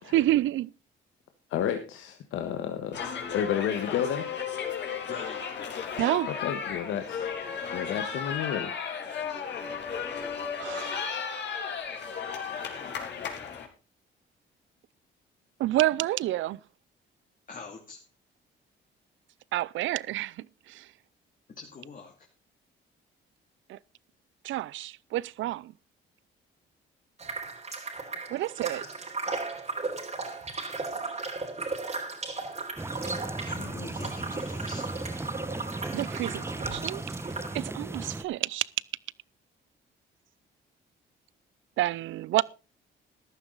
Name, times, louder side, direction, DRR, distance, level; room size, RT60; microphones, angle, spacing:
voice 1, 0.0-0.7 6.0-6.3 9.6-9.8 10.6-12.0 15.6-16.6 19.5-20.9 23.7-23.8 24.4-25.7 28.3-28.8 35.9-37.0 37.5-38.7 41.8-42.4, right 15 dB, 80° right, 0.5 m, -29 dB
voice 2, 1.5-3.0 3.3-4.2 6.4-7.2 7.7-8.7, left 9 dB, 85° left, 1.5 m, -31 dB
sound 1, 2.9-13.7, left 7 dB, 65° left, 3.6 m, -34 dB
voice 3, 5.1-5.5 9.7-9.8 17.5-18.0 21.5-22.3 33.4-34.9, left 4 dB, 45° left, 2.5 m, -44 dB
sound 2, 27.2-37.6, right 3 dB, 35° right, 3.5 m, -36 dB
sound 3, 32.8-38.2, right 2 dB, 10° right, 1.0 m, -36 dB
14.0 x 11.5 x 4.0 m
cardioid pair, 90°, 20 cm